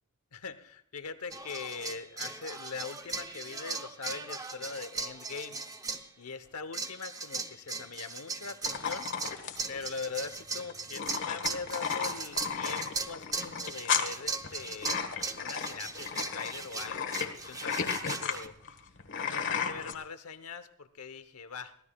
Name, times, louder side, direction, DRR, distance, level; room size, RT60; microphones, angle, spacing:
voice 1, 0.3-5.6 5.9-18.5 19.2-21.7, left 5 dB, 90° left, 11 dB, 1.0 m, -42 dB
sound 1, 1.3-6.1 6.7-18.5, right 4 dB, 15° right, 0.8 m, -38 dB
sound 2, 8.6-19.9, left 7 dB, 60° left, 1.5 m, -34 dB
23.5 x 16.0 x 2.4 m, 0.68 s
head